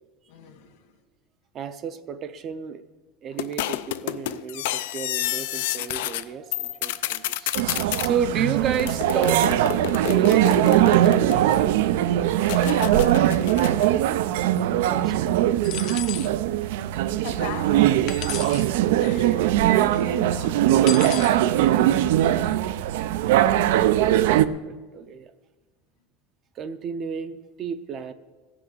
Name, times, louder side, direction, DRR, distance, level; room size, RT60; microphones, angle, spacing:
voice 1, 0.3-0.8 12.5-13.6 17.2-18.7 19.0-21.7, left 7 dB, 70° left, 1.6 m, -40 dB
voice 2, 1.5-2.8 3.2-7.6 8.0-9.7 10.0-11.8 14.9-15.3 23.8-25.3 26.6-28.1, right 7 dB, 30° right, 0.5 m, -32 dB
sound 1, 3.4-6.2 6.5-8.1 8.8-11.8 12.4-13.9, left 14 dB, 90° left, 0.4 m, -30 dB
sound 2, 7.5-24.5, right 13 dB, 80° right, 0.4 m, -21 dB
sound 3, 15.6-16.3 18.1-18.7 20.9-21.4, left 12 dB, 40° left, 0.5 m, -33 dB
16.0 x 6.1 x 8.0 m
cardioid pair, 175°, 0 cm